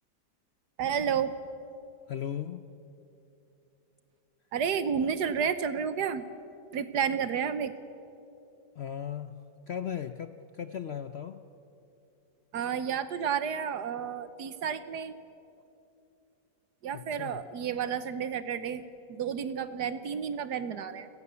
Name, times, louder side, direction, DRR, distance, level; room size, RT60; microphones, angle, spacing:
voice 1, 0.8-1.3 4.5-6.2 6.7-7.7 12.5-15.2 16.8-18.8 19.1-21.1, right 7 dB, 70° right, 12 dB, 1.4 m, -31 dB
voice 2, 2.1-2.7 8.8-11.4 16.9-17.4, left 9 dB, 70° left, 10 dB, 0.6 m, -37 dB
28.5 x 18.0 x 6.9 m, 2.8 s
omnidirectional pair, 1.9 m